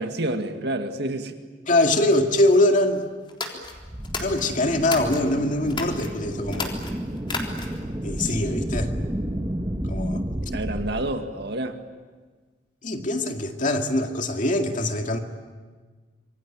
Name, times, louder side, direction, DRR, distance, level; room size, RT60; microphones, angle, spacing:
voice 1, 0.0-1.3 10.5-11.8, right 1 dB, 65° right, 6 dB, 2.1 m, -28 dB
voice 2, 1.7-3.1 4.2-6.8 8.0-8.9 9.9-10.2 12.8-15.2, left 1 dB, 45° left, 4 dB, 2.3 m, -23 dB
sound 1, 3.3-5.2 5.7-6.1 6.5-7.9, left 3 dB, 30° left, 3.7 m, -33 dB
sound 2, 3.6-10.9, right 1 dB, 15° right, 1.7 m, -30 dB
26.5 x 24.0 x 8.9 m, 1.4 s
head